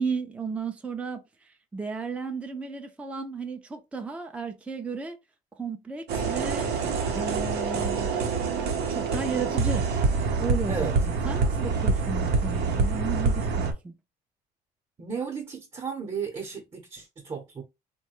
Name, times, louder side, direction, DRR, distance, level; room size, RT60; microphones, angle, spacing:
voice 1, 0.0-5.2 5.6-6.7 7.1-13.9, right 4 dB, 5° right, 0.4 m, -34 dB
sound 1, 6.1-13.7, right 4 dB, 80° right, 0.7 m, -26 dB
voice 2, 15.0-17.6, right 6 dB, 30° right, 0.8 m, -34 dB
3.1 x 2.2 x 2.9 m
cardioid pair, 110°, 17 cm